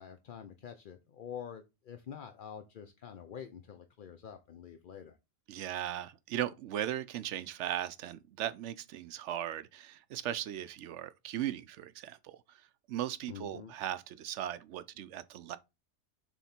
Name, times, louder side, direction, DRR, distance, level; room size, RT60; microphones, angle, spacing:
voice 1, 0.0-5.2 13.3-13.7, left 8 dB, 50° left, 0.6 m, -47 dB
voice 2, 5.5-12.6 12.9-15.6, right 11 dB, 70° right, 0.8 m, -38 dB
7.2 x 3.5 x 4.3 m
omnidirectional pair, 1.4 m